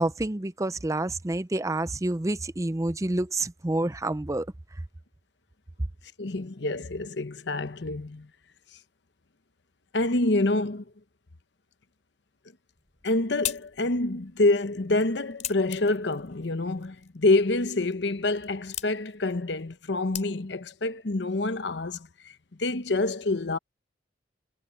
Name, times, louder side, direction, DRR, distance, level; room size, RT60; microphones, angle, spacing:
voice 1, 0.0-4.5, right 2 dB, 15° right, 0.5 m, -28 dB
voice 2, 6.2-8.3 9.9-10.8 13.0-23.6, left 2 dB, 65° left, 0.9 m, -27 dB
sound 1, 12.7-20.7, left 10 dB, 40° left, 4.8 m, -41 dB
head